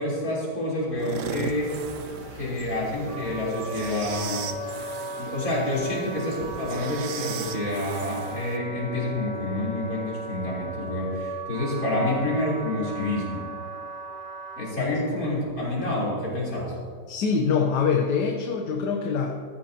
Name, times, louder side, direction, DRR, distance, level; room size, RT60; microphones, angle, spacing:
voice 1, 0.0-1.7 2.3-4.5 5.2-13.4 14.6-16.7, left 1 dB, 55° left, -6 dB, 4.0 m, -28 dB
sound 1, 0.8-4.5, right 1 dB, 20° right, 3.6 m, -45 dB
sound 2, 1.0-8.6, right 6 dB, 60° right, 0.9 m, -38 dB
Wind instrument woodwind instrument, 3.1-14.7, right 2 dB, 85° right, 3.3 m, -37 dB
voice 2, 17.1-19.4, left 5 dB, 75° left, 2 dB, 1.5 m, -24 dB
15.0 x 13.5 x 2.9 m, 2.1 s
omnidirectional pair, 1.8 m